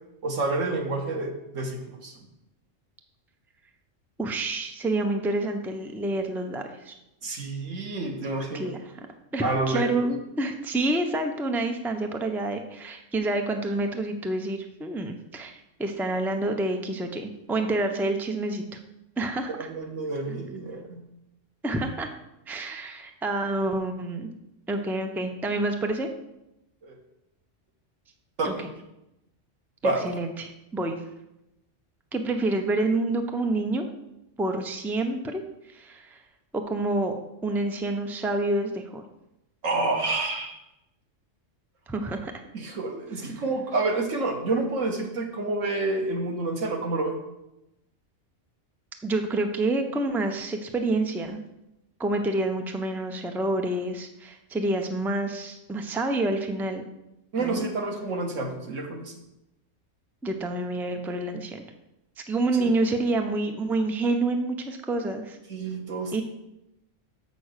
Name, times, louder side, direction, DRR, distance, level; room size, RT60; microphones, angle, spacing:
voice 1, 0.2-2.2 7.2-8.7 9.4-10.1 19.5-21.0 26.8-26.9 28.4-28.7 29.8-30.1 39.6-40.6 42.5-47.2 57.3-59.2 62.6-62.7 65.5-66.2, right 2 dB, 90° right, 2 dB, 1.7 m, -29 dB
voice 2, 4.2-6.9 8.5-9.1 9.3-18.8 19.2-19.7 21.6-22.1 22.5-24.3 24.7-26.1 28.4-28.6 29.8-31.0 32.1-33.9 34.4-36.2 36.5-37.1 37.4-39.1 41.9-42.3 43.3-43.4 49.0-51.4 52.0-56.9 57.4-57.6 60.2-61.6 62.3-65.4 66.1-66.2, right 2 dB, ahead, 5 dB, 0.5 m, -28 dB
7.1 x 6.0 x 6.6 m, 0.90 s
omnidirectional pair, 1.3 m